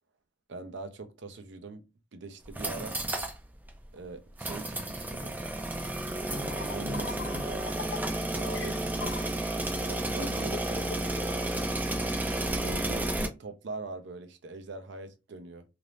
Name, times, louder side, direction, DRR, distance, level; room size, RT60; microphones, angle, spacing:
voice 1, 0.5-1.8 2.1-3.0 3.9-5.3 6.3-7.7 8.3-9.2 9.9-11.3 12.6-15.6, right 3 dB, 70° right, 0.5 m, -42 dB
sound 1, 2.4-3.4 3.7-3.8 4.4-13.3, right 1 dB, 10° right, 0.4 m, -32 dB
sound 2, 6.2-11.5, left 4 dB, 65° left, 0.5 m, -41 dB
2.5 x 2.0 x 3.1 m
head